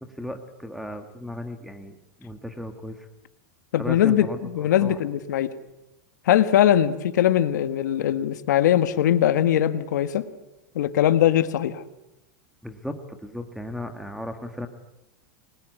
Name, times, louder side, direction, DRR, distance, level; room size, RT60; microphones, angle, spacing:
voice 1, 0.0-3.1 3.8-5.0 12.6-14.7, left 1 dB, ahead, 4 dB, 1.4 m, -36 dB
voice 2, 3.7-5.5 6.2-10.2 10.7-11.8, left 11 dB, 90° left, 11 dB, 1.6 m, -21 dB
29.5 x 21.0 x 9.5 m, 0.97 s
supercardioid pair, 160°, 9 cm